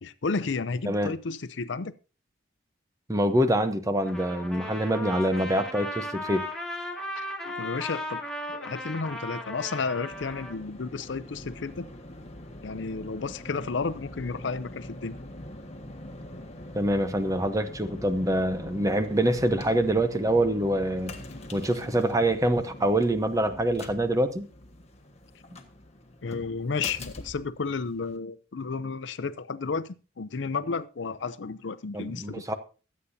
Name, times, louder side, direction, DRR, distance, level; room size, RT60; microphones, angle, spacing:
voice 1, 0.0-1.9 7.2-8.2 8.5-11.9 12.6-15.2 26.2-32.4, left 4 dB, 70° left, 0.6 m, -32 dB
voice 2, 3.1-6.5 16.7-21.2 21.5-24.5 31.9-32.5, right 1 dB, 15° right, 0.9 m, -25 dB
Trumpet, 4.0-10.6, left 1 dB, 5° left, 2.1 m, -36 dB
sound 1, 10.1-28.2, left 1 dB, 35° left, 1.5 m, -43 dB
23.0 x 8.4 x 2.7 m
head